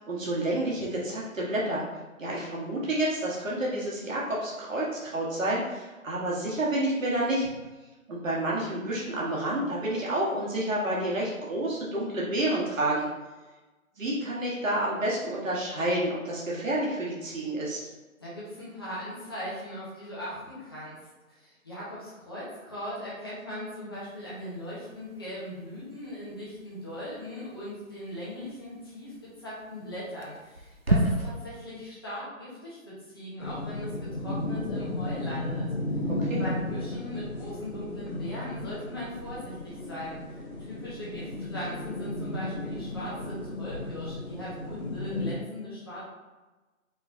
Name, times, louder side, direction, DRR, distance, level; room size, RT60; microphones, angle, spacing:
voice 1, 0.0-1.8 2.2-7.5 8.1-13.1 14.0-17.9 36.0-36.4, right 1 dB, 65° right, -5 dB, 1.5 m, -29 dB
voice 2, 18.2-21.0 21.3-35.7 36.3-46.1, left 1 dB, 15° left, -9 dB, 0.9 m, -39 dB
sound 1, 23.9-31.3, right 1 dB, 45° right, 0.4 m, -34 dB
sound 2, 33.4-45.4, left 2 dB, 85° left, 1.4 m, -34 dB
4.9 x 3.7 x 2.6 m, 1.2 s
figure-of-eight pair, 165°, 42 cm